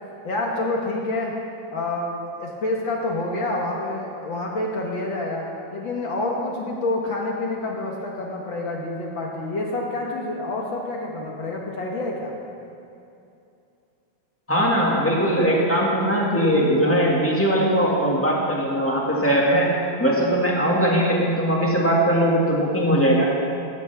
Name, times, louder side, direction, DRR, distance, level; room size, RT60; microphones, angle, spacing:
voice 1, 0.2-1.3 1.7-5.4 5.7-12.3, left 2 dB, 50° left, -1 dB, 1.6 m, -27 dB
voice 2, 14.5-19.7 20.0-23.3, equal, 5° left, -4 dB, 1.1 m, -20 dB
15.5 x 15.0 x 3.5 m, 2.7 s
omnidirectional pair, 3.7 m